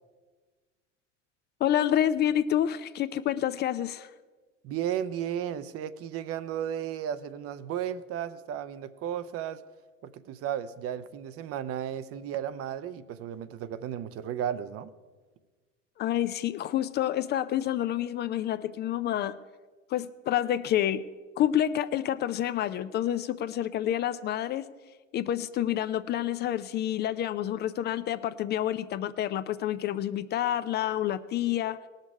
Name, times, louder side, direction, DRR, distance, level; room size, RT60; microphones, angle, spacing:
voice 1, 1.6-4.1 16.0-19.4 19.9-21.0 21.4-24.7 25.1-31.8, left 11 dB, 30° left, 14 dB, 0.4 m, -28 dB
voice 2, 4.6-9.6 10.0-14.9, right 10 dB, 35° right, 14 dB, 0.7 m, -34 dB
19.5 x 6.6 x 4.7 m, 1.4 s
figure-of-eight pair, 70°, 39 cm